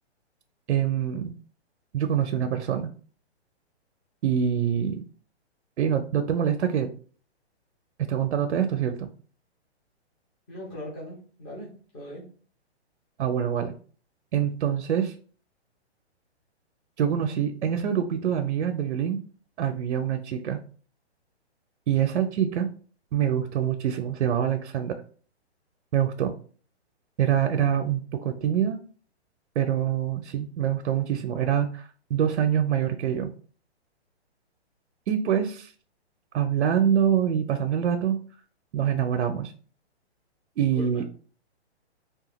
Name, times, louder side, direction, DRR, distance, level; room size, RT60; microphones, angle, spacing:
voice 1, 0.7-1.3 1.9-2.9 4.2-5.0 5.8-6.9 8.0-9.1 13.2-13.7 14.3-15.1 17.0-19.2 19.6-20.6 21.9-22.7 23.1-25.0 25.9-26.3 27.2-28.8 29.6-33.3 35.1-35.7 36.3-38.2 38.7-39.5 40.6-41.0, right 9 dB, 85° right, 6 dB, 0.5 m, -25 dB
voice 2, 10.5-12.3 40.6-41.0, equal, 10° left, -6 dB, 0.5 m, -40 dB
2.8 x 2.3 x 3.0 m, 0.41 s
hypercardioid pair, 160°, 34 cm